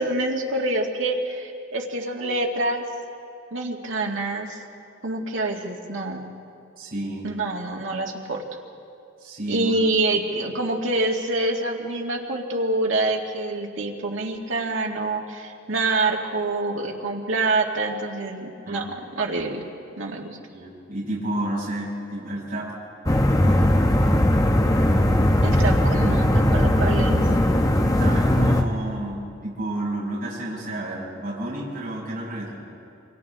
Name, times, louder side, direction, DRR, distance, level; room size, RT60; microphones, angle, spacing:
voice 1, 0.0-2.8 3.5-4.6 5.0-6.3 7.2-8.4 9.5-18.8 19.2-19.7 20.0-20.4 25.4-27.2, right 2 dB, 85° right, 0 dB, 2.2 m, -26 dB
voice 2, 6.8-7.3 9.2-9.7 18.7-18.8 20.5-22.7 23.4-23.7 27.8-32.7, right 1 dB, 50° right, -7 dB, 6.9 m, -31 dB
sound 1, 23.1-28.6, left 1 dB, 20° left, 1.0 m, -19 dB
27.5 x 25.5 x 3.7 m, 2.6 s
head